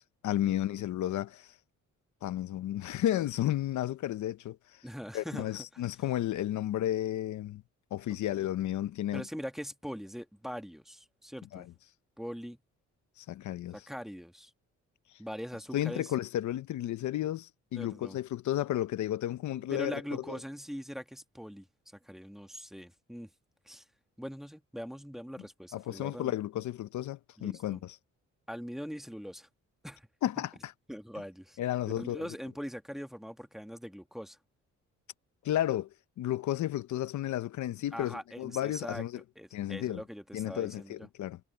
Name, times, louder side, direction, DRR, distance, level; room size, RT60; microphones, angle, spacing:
voice 1, 0.0-1.5 2.2-4.8 5.1-7.6 7.9-9.2 11.5-11.7 13.2-13.8 15.7-20.2 25.7-28.0 30.2-30.7 31.6-32.2 35.4-35.9 36.2-39.2 39.5-40.0 40.3-41.4, left 13 dB, 70° left, 0.9 m, -33 dB
voice 2, 4.8-5.8 8.3-8.4 9.1-11.7 12.2-12.6 13.7-14.5 15.2-16.1 17.7-18.2 19.7-21.7 22.0-23.3 23.6-23.8 24.2-26.3 27.4-27.8 28.5-29.5 29.8-30.1 30.9-31.6 32.0-34.4 37.9-39.0 39.3-41.1, equal, ahead, 1.5 m, -42 dB
cardioid pair, 90°, 30 cm